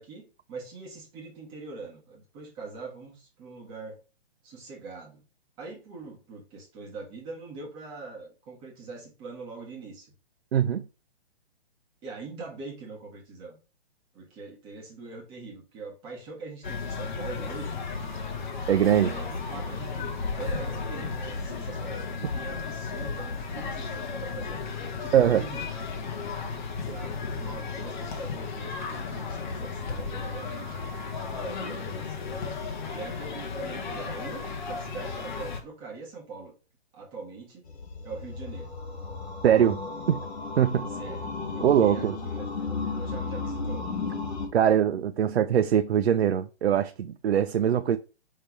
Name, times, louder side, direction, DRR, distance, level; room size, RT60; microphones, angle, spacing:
voice 1, 0.0-4.0 4.4-5.2 5.6-10.1 12.0-13.6 14.1-17.8 18.9-20.1 20.4-25.6 26.9-30.8 31.3-32.4 32.9-36.5 36.9-37.7 38.0-38.8 41.0-43.8, right 4 dB, 15° right, 1.6 m, -43 dB
voice 2, 10.5-10.8 18.7-19.1 25.1-25.4 39.4-39.8 40.1-40.3 40.6-40.9 41.6-42.2 44.5-48.0, right 9 dB, 80° right, 0.6 m, -22 dB
sound 1, 16.6-35.6, left 4 dB, 45° left, 1.5 m, -34 dB
sound 2, 37.7-44.5, left 4 dB, 75° left, 2.3 m, -34 dB
5.6 x 3.6 x 4.7 m
hypercardioid pair, 165°, 32 cm